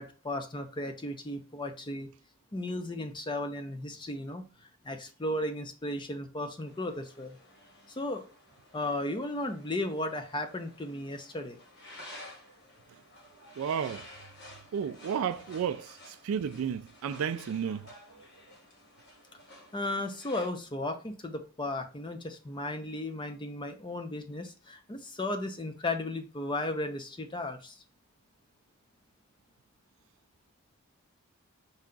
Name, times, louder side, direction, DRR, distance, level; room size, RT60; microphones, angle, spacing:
voice 1, 0.0-2.1 2.5-4.4 4.8-7.4 8.0-8.3 8.7-11.6 19.7-27.7, left 1 dB, 20° left, 0.6 m, -35 dB
sound 1, 6.6-20.5, left 1 dB, 50° left, 1.3 m, -53 dB
voice 2, 13.6-14.1 14.7-18.6, right 7 dB, 65° right, 0.3 m, -33 dB
5.5 x 2.4 x 3.7 m
head